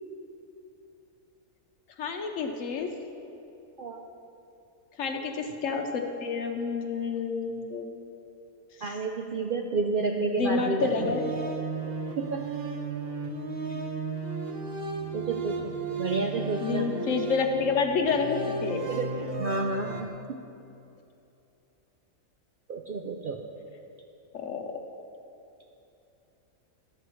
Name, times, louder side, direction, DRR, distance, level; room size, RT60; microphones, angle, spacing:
voice 1, 2.0-2.9 5.0-8.0 10.4-11.2 16.6-18.9 24.3-24.6, left 5 dB, 65° left, 3 dB, 1.3 m, -29 dB
voice 2, 8.8-11.1 11.9-12.5 13.7-13.8 15.1-16.9 18.9-20.4 22.7-23.4, right 3 dB, 65° right, 2 dB, 0.5 m, -31 dB
sound 1, 10.8-20.1, right 4 dB, 50° right, 0.9 m, -34 dB
14.0 x 11.0 x 3.1 m, 2.8 s
omnidirectional pair, 1.5 m